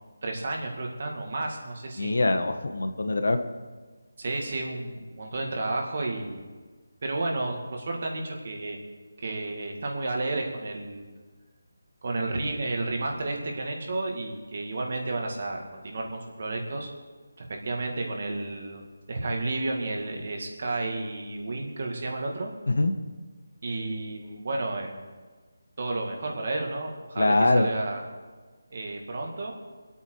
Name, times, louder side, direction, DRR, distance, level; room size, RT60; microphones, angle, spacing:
voice 1, 0.2-2.3 4.2-6.4 7.0-8.8 9.2-11.1 12.0-16.9 17.4-18.8 19.1-22.5 23.6-25.0 25.8-28.0 28.7-29.6, right 2 dB, 35° right, 1 dB, 2.2 m, -32 dB
voice 2, 2.0-3.4 22.7-22.9 27.2-27.7, left 2 dB, 70° left, 7 dB, 1.4 m, -23 dB
24.0 x 8.9 x 4.8 m, 1.4 s
figure-of-eight pair, 180°, 0 cm